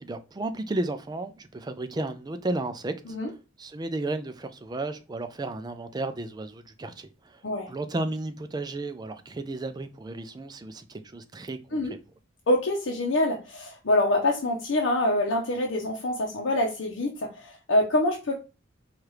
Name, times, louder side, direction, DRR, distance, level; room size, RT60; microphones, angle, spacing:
voice 1, 0.0-3.2 3.6-7.4 7.7-12.0, right 2 dB, 20° right, 0.4 m, -33 dB
voice 2, 12.5-18.3, left 1 dB, 80° left, 0.7 m, -25 dB
4.7 x 2.4 x 3.1 m
head